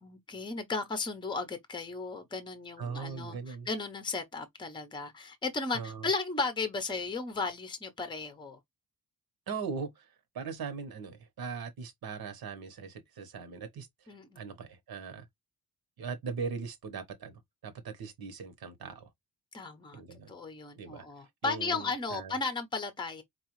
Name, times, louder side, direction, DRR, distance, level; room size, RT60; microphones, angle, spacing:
voice 1, 0.0-8.6 14.1-14.4 19.5-20.0 20.3-23.2, left 4 dB, 10° left, 0.7 m, -35 dB
voice 2, 2.8-3.7 5.7-6.1 9.5-15.3 16.0-19.1 19.9-20.3 20.8-21.0 21.4-22.4, right 5 dB, 70° right, 1.1 m, -40 dB
4.7 x 2.3 x 3.0 m
wide cardioid pair, 150°, 37 cm